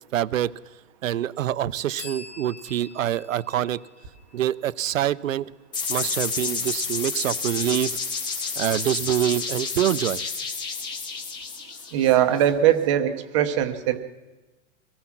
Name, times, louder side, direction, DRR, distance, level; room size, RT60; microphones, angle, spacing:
voice 1, 0.1-0.5 1.0-3.8 4.3-5.5 5.9-8.0 8.6-10.2, right 11 dB, 65° right, 17 dB, 0.8 m, -25 dB
sound 1, 2.0-5.5, left 5 dB, 55° left, 3.4 m, -46 dB
sound 2, 5.7-12.4, left 5 dB, 10° left, 1.2 m, -30 dB
voice 2, 11.9-14.0, right 11 dB, 20° right, 9 dB, 0.9 m, -21 dB
24.0 x 18.5 x 6.0 m, 1.1 s
hypercardioid pair, 170°, 42 cm